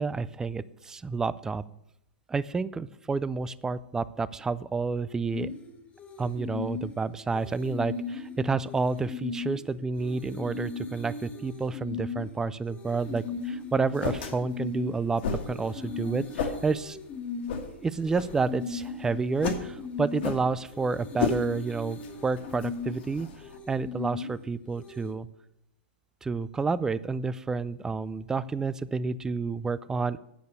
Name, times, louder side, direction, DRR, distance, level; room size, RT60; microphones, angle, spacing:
voice 1, 0.0-1.6 2.3-5.5 6.2-17.0 17.8-23.3 23.7-25.3 26.2-30.2, right 4 dB, 10° right, 17 dB, 0.3 m, -30 dB
sound 1, 5.3-25.2, left 4 dB, 20° left, 1.3 m, -38 dB
sound 2, 12.9-23.6, left 6 dB, 65° left, 1.7 m, -36 dB
9.3 x 6.6 x 6.8 m, 0.80 s
hypercardioid pair, 135°, 6 cm